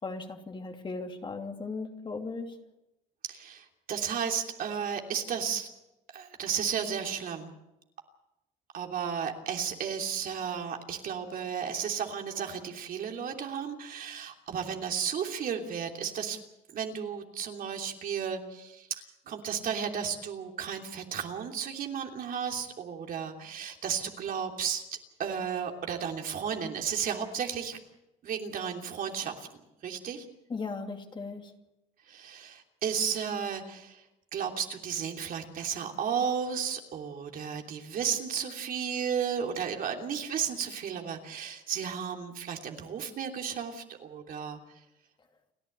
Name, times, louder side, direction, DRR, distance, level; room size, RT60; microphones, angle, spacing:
voice 1, 0.0-2.5 30.5-31.5, left 4 dB, 30° left, 4 dB, 2.7 m, -37 dB
voice 2, 3.3-5.7 6.1-7.5 8.7-16.4 16.7-18.9 19.3-24.8 25.2-27.8 28.2-29.5 29.8-30.2 32.1-34.0 34.3-44.6, right 7 dB, 55° right, 3 dB, 3.1 m, -33 dB
30.0 x 11.0 x 8.8 m, 0.90 s
cardioid pair, 110°, 17 cm